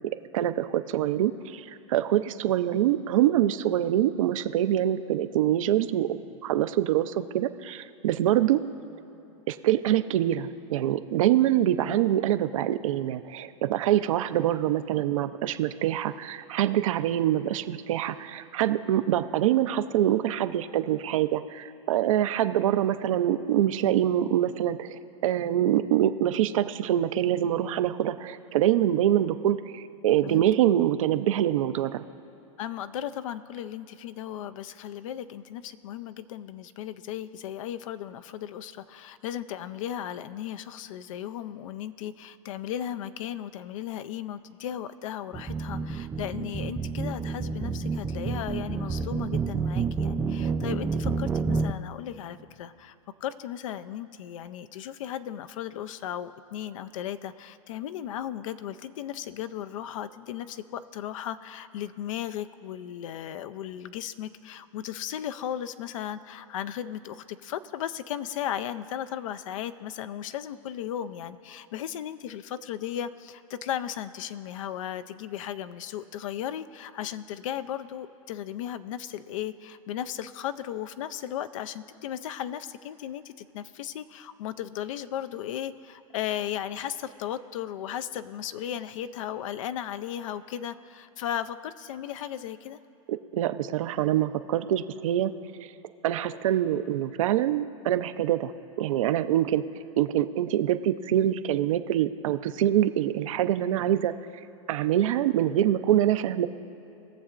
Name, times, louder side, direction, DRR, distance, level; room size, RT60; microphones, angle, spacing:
voice 1, 0.3-8.6 9.5-32.0 93.1-95.3 95.6-95.7 96.0-98.5 98.8-99.6 100.0-104.1 104.7-106.5, right 12 dB, 75° right, 11 dB, 0.6 m, -25 dB
voice 2, 32.6-53.0 53.2-92.8, left 10 dB, 70° left, 12 dB, 0.5 m, -36 dB
sound 1, 45.3-51.7, right 4 dB, 15° right, 0.4 m, -29 dB
20.5 x 7.2 x 2.5 m, 2.9 s
hypercardioid pair, 120°, 17 cm